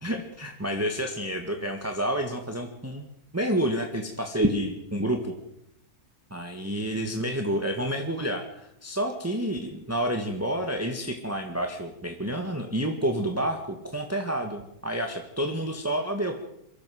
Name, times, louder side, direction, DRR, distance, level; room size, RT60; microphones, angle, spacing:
voice 1, 0.0-3.1 3.3-5.3 6.3-16.4, right 1 dB, 10° right, 3 dB, 1.7 m, -29 dB
23.5 x 15.0 x 7.8 m, 0.78 s
omnidirectional pair, 1.6 m